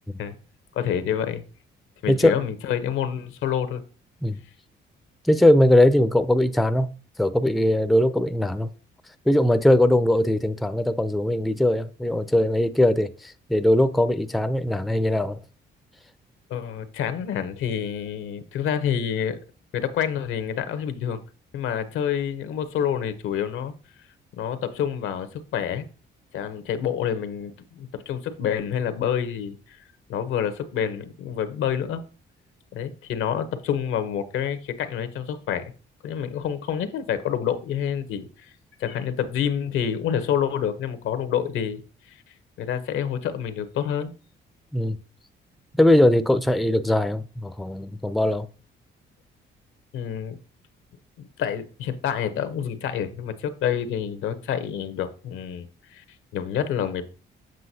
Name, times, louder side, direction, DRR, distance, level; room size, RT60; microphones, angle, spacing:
voice 1, 0.7-1.4 2.0-3.8 16.5-19.4 19.7-21.2 21.5-23.7 24.4-25.8 26.3-29.8 30.1-32.0 32.7-35.7 36.0-38.5 38.8-41.8 42.1-42.2 42.6-44.1 49.9-50.4 51.4-56.0 56.3-57.1, left 8 dB, 85° left, 0.8 m, -28 dB
voice 2, 2.1-2.4 4.2-4.4 5.2-6.9 7.2-8.7 9.3-15.4 44.7-45.0 45.8-48.5, left 1 dB, ahead, 0.4 m, -20 dB
7.6 x 5.8 x 2.7 m
cardioid pair, 90°, 20 cm